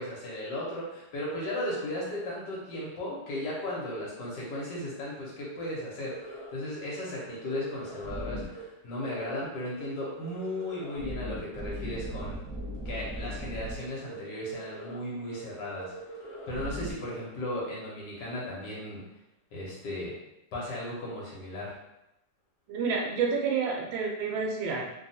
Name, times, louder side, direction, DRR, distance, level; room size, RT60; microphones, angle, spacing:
voice 1, 0.0-12.4 12.8-15.9 16.5-19.0 19.5-20.1 20.5-21.8, left 1 dB, 70° left, -5 dB, 1.4 m, -36 dB
sound 1, 5.5-5.7 6.0-6.5 6.8-6.9 7.2-8.6 8.9-9.4 9.7-9.8 10.1-13.7 14.0-14.2 14.5-15.0 15.2-15.4 15.7-16.9, right 1 dB, 20° left, 1.0 m, -40 dB
voice 2, 22.7-24.8, right 5 dB, 90° right, -1 dB, 1.4 m, -29 dB
3.3 x 2.2 x 2.7 m, 0.88 s
omnidirectional pair, 2.0 m